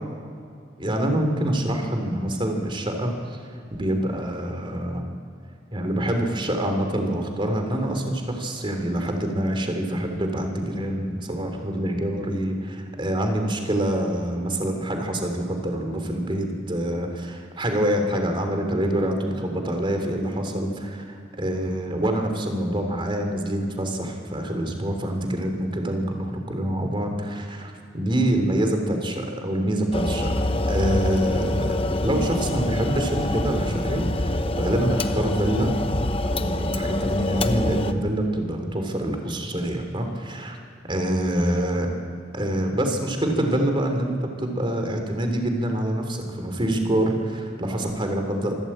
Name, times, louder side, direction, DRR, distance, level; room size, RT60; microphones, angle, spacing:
voice 1, 0.8-3.2 3.8-5.0 5.7-35.7 36.2-40.6 40.9-41.9 42.3-48.5, right 1 dB, 30° right, 4 dB, 3.2 m, -26 dB
sound 1, 29.9-37.9, left 1 dB, 30° left, 0.9 m, -25 dB
25.5 x 13.0 x 8.8 m, 2.4 s
head